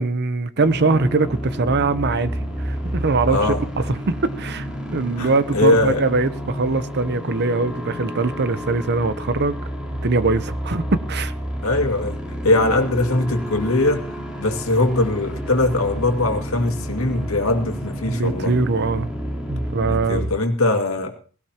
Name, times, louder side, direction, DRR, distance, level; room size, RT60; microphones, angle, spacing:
voice 1, 0.0-2.4 2.6-3.5 3.9-4.7 4.9-9.6 10.0-11.3 18.1-19.1 19.5-20.3, right 3 dB, 50° right, 0.8 m, -22 dB
sound 1, 0.6-20.3, equal, 5° right, 3.6 m, -30 dB
voice 2, 3.3-3.6 5.2-6.1 11.6-12.2 12.4-14.1 14.4-18.6 19.9-21.2, left 2 dB, 80° left, 2.3 m, -21 dB
18.5 x 17.5 x 2.9 m
head